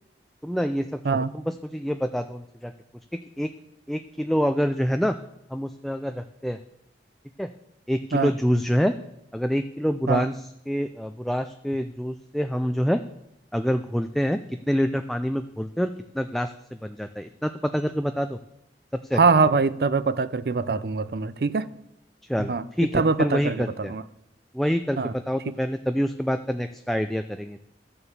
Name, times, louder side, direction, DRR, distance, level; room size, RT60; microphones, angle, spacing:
voice 1, 0.4-1.0 1.3-2.7 3.4-3.5 3.9-5.1 5.5-6.6 7.4-7.5 7.9-8.9 9.3-13.0 13.5-14.4 14.7-16.5 16.8-18.4 19.1-19.2 22.3-22.9 23.2-23.9 24.5-27.6, equal, ahead, 0.3 m, -26 dB
voice 2, 19.1-21.7 22.4-22.6 22.9-24.0 25.0-25.1 25.5-25.6, right 4 dB, 60° right, 0.5 m, -23 dB
12.5 x 6.8 x 7.2 m
head